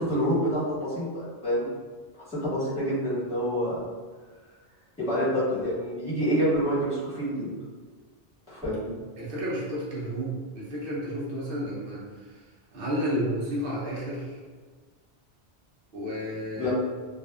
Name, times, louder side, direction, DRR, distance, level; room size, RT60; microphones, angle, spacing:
voice 1, 0.0-1.7 2.3-3.8 5.0-7.5 8.5-8.9 16.5-16.7, equal, 10° left, -12 dB, 1.2 m, -27 dB
voice 2, 9.2-12.4 12.7-14.4 15.9-16.7, equal, 60° right, -5 dB, 0.8 m, -31 dB
2.6 x 2.3 x 2.2 m, 1.5 s
omnidirectional pair, 1.1 m